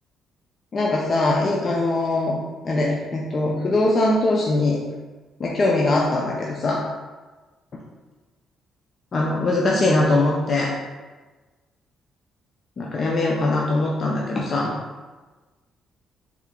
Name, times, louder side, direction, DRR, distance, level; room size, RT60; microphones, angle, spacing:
voice 1, 0.7-2.4 2.6-4.8 5.4-6.8 9.1-10.7 12.8-14.7, left 2 dB, 45° left, -2 dB, 0.5 m, -21 dB
3.6 x 2.8 x 3.6 m, 1.3 s
cardioid pair, 90°, 0 cm